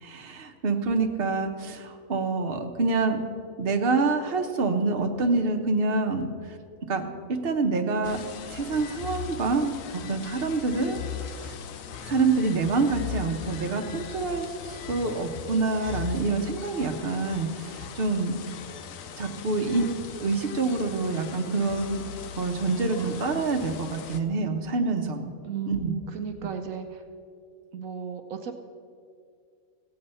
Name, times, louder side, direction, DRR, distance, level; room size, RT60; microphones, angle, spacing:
voice 1, 0.0-3.2 3.6-6.3 6.9-8.2 8.5-9.7 10.1-11.0 11.4-11.5 12.1-18.3 19.2-19.8 20.2-22.0 22.4-25.3 25.7-25.9, right 3 dB, 45° right, 4 dB, 1.1 m, -26 dB
sound 1, 8.0-24.2, left 8 dB, 75° left, 1.1 m, -39 dB
voice 2, 25.4-27.0 27.7-28.5, right 8 dB, 75° right, 6 dB, 1.1 m, -34 dB
16.5 x 7.8 x 5.5 m, 2.3 s
omnidirectional pair, 1.4 m